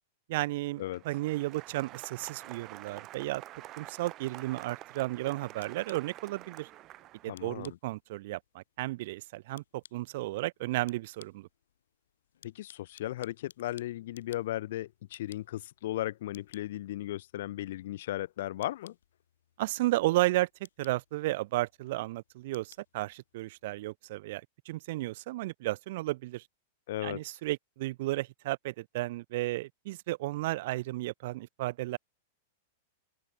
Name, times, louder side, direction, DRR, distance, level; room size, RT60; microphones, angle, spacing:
voice 1, 0.3-3.4 3.8-6.7 7.2-11.5 19.6-20.5 20.8-26.4 27.0-32.0, right 18 dB, 60° right, 0.5 m, -33 dB
Applause, 0.6-7.6, right 15 dB, 35° right, 4.6 m, -48 dB
sound 1, 5.0-23.8, left 10 dB, 85° left, 6.0 m, -62 dB
voice 2, 7.3-7.8 12.4-18.9 26.9-27.2, left 14 dB, 70° left, 1.1 m, -36 dB
open air
hypercardioid pair, 130°, 0 cm